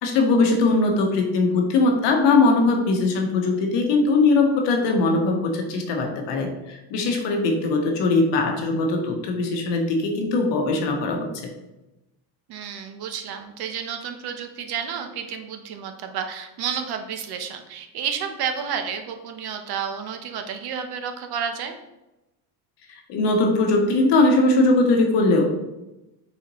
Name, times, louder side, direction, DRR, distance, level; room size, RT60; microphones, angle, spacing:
voice 1, 0.0-11.5 22.9-25.4, left 3 dB, 65° left, 3 dB, 1.0 m, -20 dB
voice 2, 12.5-21.8, right 7 dB, 55° right, 6 dB, 0.7 m, -31 dB
4.2 x 4.0 x 3.0 m, 0.98 s
supercardioid pair, 85°, 46 cm